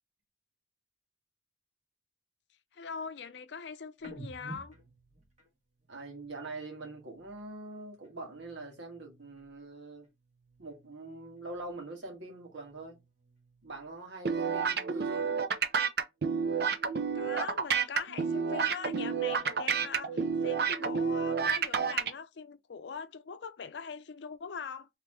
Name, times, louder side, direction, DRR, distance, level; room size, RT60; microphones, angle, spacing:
voice 1, 2.7-4.7 15.0-15.5 17.1-24.9, left 5 dB, 75° left, 0.5 m, -42 dB
sound 1, 4.0-7.6 7.9-9.7 10.0-11.9 12.2-14.1, right 1 dB, 40° right, 1.5 m, -53 dB
voice 2, 5.9-10.1 10.6-13.0 13.6-15.4, right 2 dB, 85° right, 1.6 m, -44 dB
sound 2, 14.2-22.1, right 6 dB, 60° right, 0.5 m, -30 dB
3.5 x 3.1 x 3.2 m
head